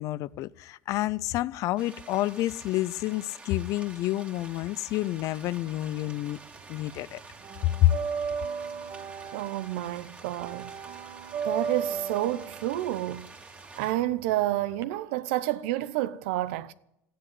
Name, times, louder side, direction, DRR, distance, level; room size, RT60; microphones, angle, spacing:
voice 1, 0.0-6.4 6.7-7.2 7.8-7.9, left 16 dB, 65° left, 0.6 m, -28 dB
sound 1, 1.8-13.9, right 3 dB, 20° right, 2.9 m, -49 dB
sound 2, 5.6-6.7 6.9-14.8, right 6 dB, 60° right, 1.6 m, -36 dB
voice 2, 9.3-10.7 11.4-13.3 13.8-16.7, right 15 dB, 90° right, 0.8 m, -29 dB
14.5 x 10.0 x 9.5 m
supercardioid pair, 110°, 6 cm